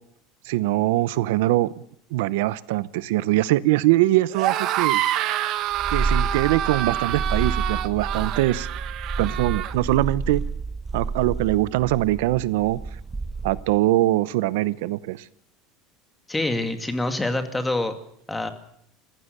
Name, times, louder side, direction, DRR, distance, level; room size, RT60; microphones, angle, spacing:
voice 1, 0.4-1.7 2.1-5.0 5.9-8.7 9.2-10.4 10.9-12.8 13.4-15.2, right 16 dB, 80° right, 17 dB, 0.7 m, -22 dB
sound 1, 4.3-9.7, right 13 dB, 50° right, 1.5 m, -27 dB
Purr, 5.7-13.8, right 4 dB, 10° right, 0.7 m, -30 dB
voice 2, 16.3-17.9 18.3-18.5, left 2 dB, 10° left, 7 dB, 2.2 m, -26 dB
25.0 x 15.5 x 6.7 m, 0.71 s
supercardioid pair, 135°, 0 cm